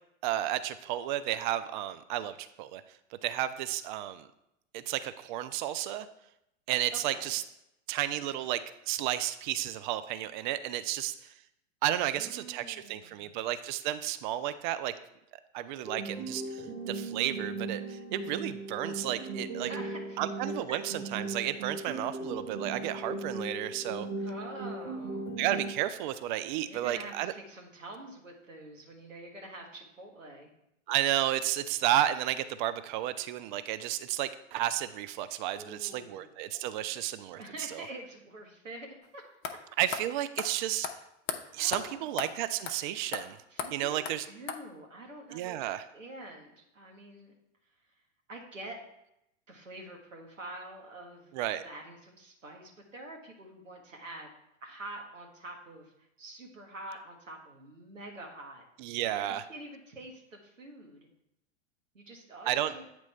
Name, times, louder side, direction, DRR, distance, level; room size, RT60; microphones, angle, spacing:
voice 1, 0.2-2.8 3.2-4.3 4.7-6.1 6.7-7.4 7.9-11.3 11.8-14.9 15.5-19.7 20.2-24.1 25.4-27.3 30.9-37.4 37.7-37.9 39.8-40.9 41.5-43.4 43.7-44.3 45.3-45.9 51.3-51.6 58.8-59.4 62.5-62.7, right 13 dB, 40° right, 12 dB, 0.4 m, -32 dB
voice 2, 6.9-7.3 12.0-13.3 19.6-20.8 24.2-25.3 26.6-30.5 35.5-36.5 37.4-39.2 39.5-39.6 41.5-42.1 43.5-47.3 48.3-48.8 49.5-54.3 54.6-58.6 59.0-61.1 61.9-62.8, right 1 dB, 85° right, 1 dB, 1.6 m, -46 dB
sound 1, 15.9-25.9, right 3 dB, 55° right, 1.5 m, -38 dB
sound 2, 39.0-39.1 39.4-39.5 39.9-40.0 40.4-40.5 40.8-40.9 41.3-41.4 41.7-41.8 42.2-42.3 42.6-42.8 43.1-43.2 43.6-43.7 44.0-44.1 44.5-44.6, left 7 dB, 30° left, 0.6 m, -34 dB
8.4 x 3.1 x 4.2 m, 0.82 s
figure-of-eight pair, 100°, 38 cm